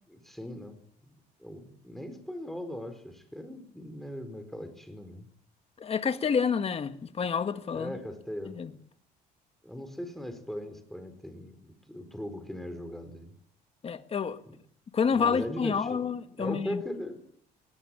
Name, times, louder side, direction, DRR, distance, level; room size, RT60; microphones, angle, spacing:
voice 1, 0.1-5.3 7.7-8.6 9.6-13.3 14.5-14.6 15.1-17.2, equal, ahead, 4.7 m, -39 dB
voice 2, 5.8-8.0 8.5-8.7 13.8-14.4 14.9-16.8, left 6 dB, 35° left, 1.7 m, -29 dB
20.5 x 18.0 x 8.9 m
cardioid pair, 110°, 17 cm